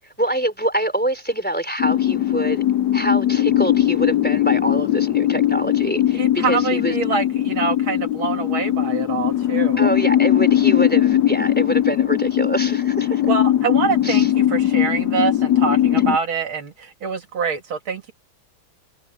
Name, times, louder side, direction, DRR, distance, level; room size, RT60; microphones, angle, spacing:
voice 1, 0.2-2.6 2.9-6.9 9.8-13.2 14.0-14.3 15.9-16.0, right 1 dB, 5° left, 3.7 m, -25 dB
sound 1, 1.8-16.2, left 12 dB, 80° left, 0.8 m, -19 dB
voice 2, 6.1-9.9 13.3-18.1, right 6 dB, 75° right, 2.9 m, -25 dB
omnidirectional pair, 2.3 m